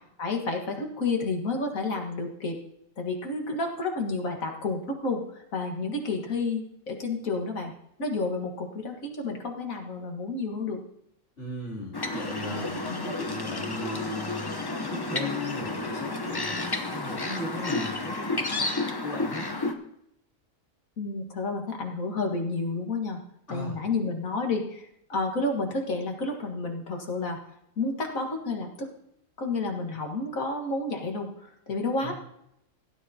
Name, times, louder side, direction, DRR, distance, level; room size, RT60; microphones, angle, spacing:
voice 1, 0.2-2.6 3.0-7.7 8.0-10.8 12.7-13.1 21.0-23.2 23.5-27.4 27.8-28.9 29.4-32.1, left 3 dB, 80° left, 2 dB, 2.1 m, -30 dB
voice 2, 11.4-12.7 13.0-14.6 14.9-19.5 23.5-23.8 32.0-32.1, left 2 dB, 55° left, -6 dB, 3.5 m, -37 dB
sound 1, 11.9-19.7, left 2 dB, 20° left, 0.8 m, -31 dB
17.0 x 9.5 x 2.8 m, 0.77 s
omnidirectional pair, 1.4 m